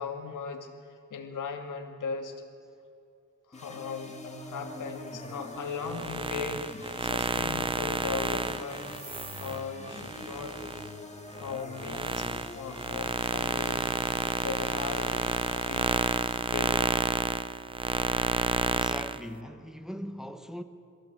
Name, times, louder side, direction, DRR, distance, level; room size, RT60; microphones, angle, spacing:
voice 1, 0.0-2.3 3.5-9.0 9.4-10.6 11.4-13.9 14.4-15.9 16.5-16.7, left 5 dB, 85° left, 2.2 m, -38 dB
sound 1, 3.5-17.0, left 2 dB, 20° left, 2.4 m, -44 dB
sound 2, 5.8-10.9 11.3-19.2, right 3 dB, 15° right, 0.6 m, -30 dB
voice 2, 18.7-20.6, equal, ahead, 0.9 m, -40 dB
22.5 x 15.0 x 8.1 m
wide cardioid pair, 140°, 30 cm